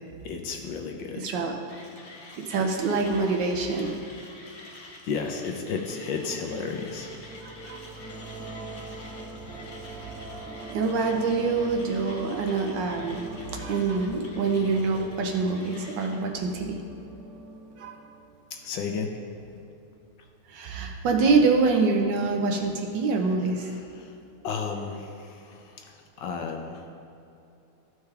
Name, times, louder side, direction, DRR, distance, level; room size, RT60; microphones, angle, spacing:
voice 1, 0.2-1.3 4.6-7.1 18.5-19.1 23.3-24.2 24.4-26.8, left 5 dB, 70° left, 3 dB, 1.2 m, -34 dB
voice 2, 1.2-1.5 2.5-4.0 7.4-7.8 10.7-16.8 17.8-17.9 20.5-23.7, right 4 dB, 70° right, 2 dB, 1.2 m, -25 dB
Mechanisms, 1.7-16.2, left 2 dB, 45° left, 0.8 m, -48 dB
sound 1, 5.9-18.8, right 2 dB, 5° left, 1.1 m, -43 dB
14.0 x 4.6 x 3.3 m, 2.7 s
omnidirectional pair, 2.3 m